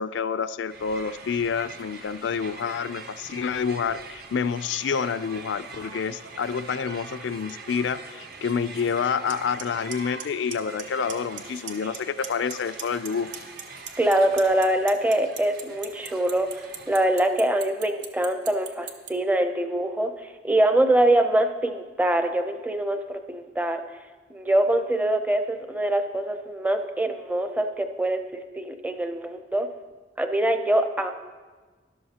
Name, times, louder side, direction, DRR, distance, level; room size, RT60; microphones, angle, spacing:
voice 1, 0.0-13.3, left 6 dB, 80° left, 15 dB, 0.4 m, -28 dB
Crowd, 0.7-17.4, right 4 dB, 60° right, 0.9 m, -43 dB
Clock, 9.3-9.4 9.6-9.9 10.2-10.8 11.1-11.4 11.7-12.5 12.8-19.1, right 8 dB, 85° right, 0.8 m, -35 dB
voice 2, 14.0-23.8 24.3-29.7 30.2-31.1, right 1 dB, 10° right, 7 dB, 0.5 m, -24 dB
12.5 x 11.5 x 2.8 m, 1.4 s
head